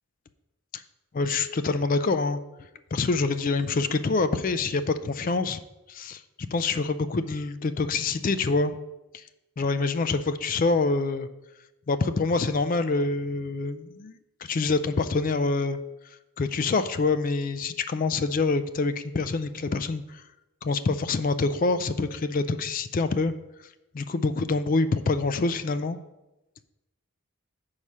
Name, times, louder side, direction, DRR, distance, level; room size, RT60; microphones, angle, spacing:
voice 1, 1.1-5.6 5.9-6.2 6.5-8.8 9.1-9.3 9.6-11.3 11.9-20.3 20.6-23.3 23.6-26.0, left 3 dB, 40° left, 12 dB, 0.3 m, -26 dB
7.2 x 4.8 x 5.5 m, 0.99 s
head